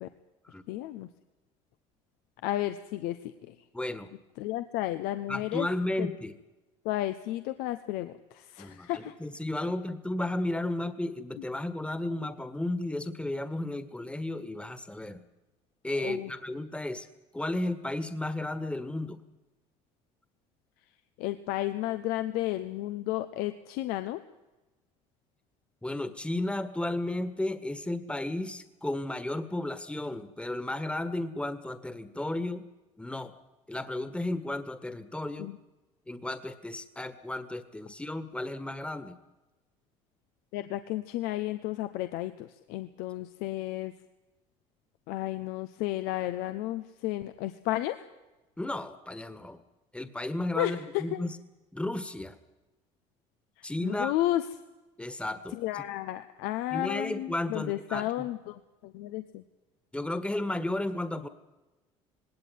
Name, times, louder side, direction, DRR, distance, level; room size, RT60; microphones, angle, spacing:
voice 1, 0.7-1.1 2.4-3.5 4.4-5.7 6.0-6.1 6.8-9.1 16.0-16.3 21.2-24.2 35.4-35.6 40.5-43.9 45.1-48.0 50.6-51.2 53.8-54.4 55.5-59.4, left 15 dB, 75° left, 10 dB, 1.0 m, -32 dB
voice 2, 3.7-4.1 5.3-6.3 8.6-15.2 15.8-17.1 17.3-19.2 25.8-32.6 33.0-33.3 33.7-35.5 36.1-39.2 48.6-49.6 49.9-51.4 51.7-52.4 53.6-54.1 55.0-55.8 56.7-58.3 59.9-61.3, left 1 dB, 5° left, 12 dB, 1.7 m, -33 dB
19.5 x 18.0 x 9.4 m, 1.1 s
supercardioid pair, 75°, 16 cm